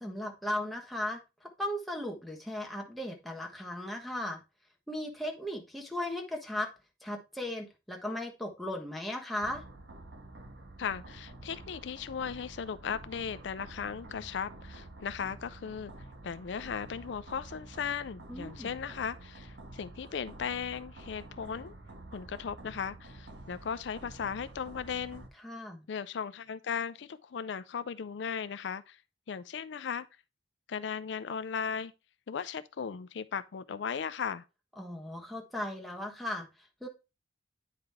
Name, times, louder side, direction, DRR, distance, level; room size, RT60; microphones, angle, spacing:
voice 1, 0.0-4.4 4.9-6.7 7.0-9.6 18.3-18.7 25.4-25.8 34.8-36.5 36.8-36.9, left 1 dB, ahead, 1.2 m, -37 dB
sound 1, 9.4-25.3, right 2 dB, 75° right, 1.3 m, -49 dB
voice 2, 10.8-15.9 16.2-21.7 22.1-25.2 25.9-29.0 29.3-30.1 30.7-31.9 32.3-34.4, left 6 dB, 75° left, 0.4 m, -37 dB
9.1 x 4.9 x 3.5 m
head